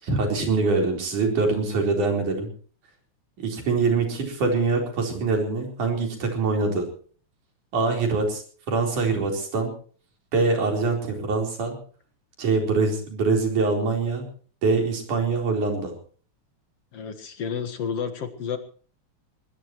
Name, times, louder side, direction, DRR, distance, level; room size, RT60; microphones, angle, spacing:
voice 1, 0.0-2.5 3.4-6.9 7.7-8.4 8.7-9.7 10.3-11.8 12.4-14.3 14.6-15.9, right 3 dB, 85° right, 2 dB, 5.8 m, -24 dB
voice 2, 16.9-18.6, left 7 dB, 55° left, 6 dB, 2.5 m, -30 dB
22.5 x 19.5 x 3.1 m, 0.43 s
omnidirectional pair, 3.4 m